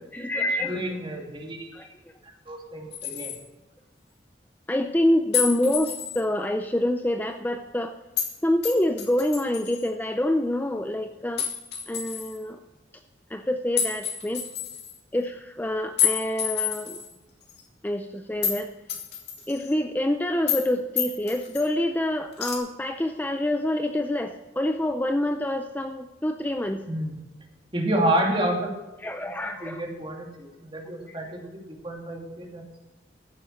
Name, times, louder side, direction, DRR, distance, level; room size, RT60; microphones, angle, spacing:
voice 1, 0.1-1.0 1.7-1.9 4.7-7.9 8.4-11.5 11.9-12.6 13.3-14.5 15.1-17.0 17.8-18.7 19.5-26.8 29.0-29.8 31.1-31.2, left 1 dB, 10° left, 6 dB, 0.5 m, -26 dB
voice 2, 0.6-1.9 2.2-3.3 26.9-27.1 27.7-28.7 29.6-32.6, right 1 dB, 30° right, 0 dB, 2.7 m, -29 dB
sound 1, 2.9-3.4 5.3-6.2 8.2-8.3 8.6-9.8 11.4-12.4 13.8-15.0 16.0-17.1 17.5-17.6 18.4-18.6 18.9-19.7 20.5-20.7 21.0-21.6 22.4-22.6, left 8 dB, 65° left, 2.4 m, -29 dB
14.5 x 7.5 x 6.5 m, 1.1 s
head